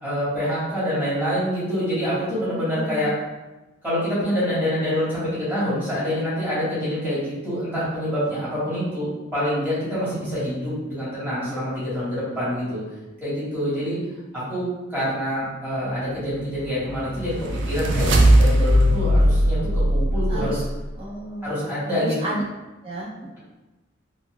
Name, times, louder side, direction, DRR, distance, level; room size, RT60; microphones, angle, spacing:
voice 1, 0.0-3.1 3.8-12.8 13.2-14.0 14.3-14.6 14.9-17.3 17.6-20.6 21.4-22.2, equal, 10° right, -11 dB, 1.4 m, -26 dB
voice 2, 2.5-3.1 20.3-20.6 21.0-22.4 22.8-23.4, right 1 dB, 30° right, -6 dB, 0.8 m, -32 dB
sound 1, 16.6-20.8, equal, 65° right, 0.4 m, -19 dB
3.9 x 2.3 x 2.3 m, 1.1 s
head